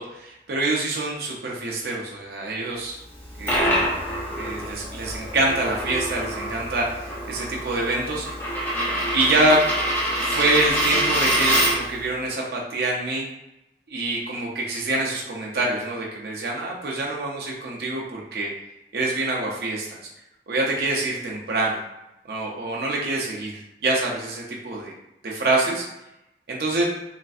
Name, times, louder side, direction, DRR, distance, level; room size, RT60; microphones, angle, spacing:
voice 1, 0.0-3.0 3.4-3.8 4.3-8.3 9.1-9.6 10.2-13.3 13.9-18.5 18.9-20.0 20.5-21.8 22.2-24.9 25.2-25.9 26.5-26.8, right 2 dB, 60° right, -2 dB, 0.5 m, -25 dB
Coin (dropping), 3.1-12.0, right 1 dB, 10° left, 0.5 m, -25 dB
3.2 x 2.5 x 2.3 m, 0.90 s
head